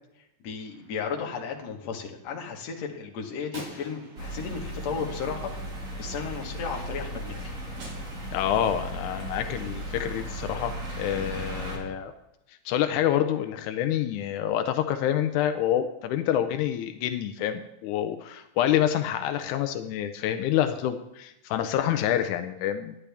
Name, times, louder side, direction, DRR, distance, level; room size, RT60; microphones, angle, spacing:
voice 1, 0.4-5.5 6.0-7.6, left 6 dB, 65° left, 1 dB, 2.4 m, -34 dB
Gunshot gunfire, 0.6-1.6 3.5-5.9 7.8-8.8, right 2 dB, 80° right, 4.0 m, -47 dB
sound 1, 4.2-11.8, right 1 dB, 30° right, 2.2 m, -36 dB
voice 2, 8.3-12.1 12.7-23.0, left 11 dB, 90° left, 8 dB, 2.1 m, -27 dB
12.0 x 9.8 x 3.4 m, 0.87 s
omnidirectional pair, 3.4 m